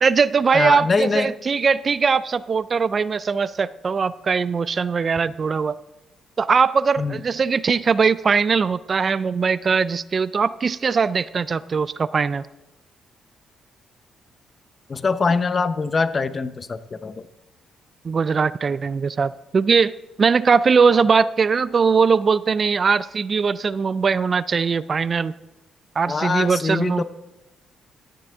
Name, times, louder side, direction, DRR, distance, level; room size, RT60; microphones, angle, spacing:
voice 1, 0.0-5.7 6.4-12.5 18.0-19.9 20.2-25.3 26.0-27.0, right 5 dB, 40° right, 17 dB, 0.3 m, -20 dB
voice 2, 0.5-1.3 7.0-7.2 14.9-17.3 26.1-27.0, left 4 dB, 35° left, 12 dB, 0.7 m, -23 dB
13.0 x 10.0 x 3.5 m, 1.0 s
cardioid pair, 90°, 0 cm